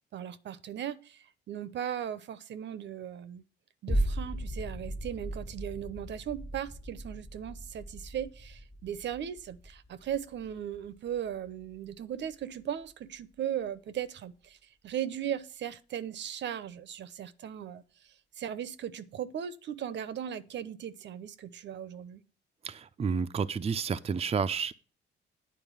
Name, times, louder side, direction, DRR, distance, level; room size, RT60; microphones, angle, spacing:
voice 1, 0.1-3.4 3.8-14.6 14.8-17.8 18.4-22.2, right 10 dB, 65° right, 0.8 m, -37 dB
sound 1, 3.9-12.4 12.9-13.0, right 1 dB, 15° left, 1.4 m, -37 dB
voice 2, 22.6-24.7, right 6 dB, 30° right, 0.6 m, -30 dB
9.3 x 4.4 x 7.2 m
cardioid pair, 90°, 20 cm